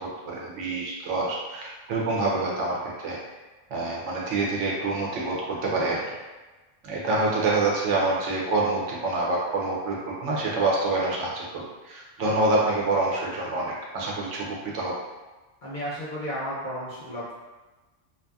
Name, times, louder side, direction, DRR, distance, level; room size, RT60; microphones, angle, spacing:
voice 1, 0.0-3.2 3.7-6.0 6.8-14.9, right 2 dB, 75° right, -3 dB, 0.9 m, -26 dB
voice 2, 15.6-17.3, equal, 50° left, -7 dB, 0.6 m, -33 dB
2.6 x 2.5 x 2.3 m, 1.2 s
omnidirectional pair, 1.3 m